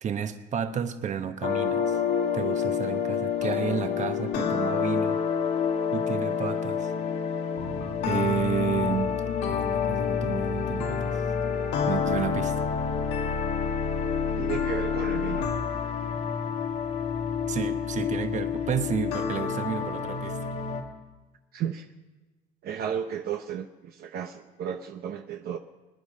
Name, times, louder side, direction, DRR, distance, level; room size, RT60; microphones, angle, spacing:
voice 1, 0.0-2.0 2.3-5.2 5.9-6.9 8.1-11.2 11.9-12.6 17.5-20.4, right 8 dB, 45° right, 9 dB, 1.1 m, -31 dB
sound 1, 1.4-20.8, left 7 dB, 90° left, 2.0 m, -28 dB
voice 2, 14.4-15.5 21.5-21.9 22.6-25.6, right 8 dB, 65° right, 5 dB, 0.9 m, -33 dB
25.5 x 10.0 x 5.2 m, 1.2 s
cardioid pair, 110°, 17 cm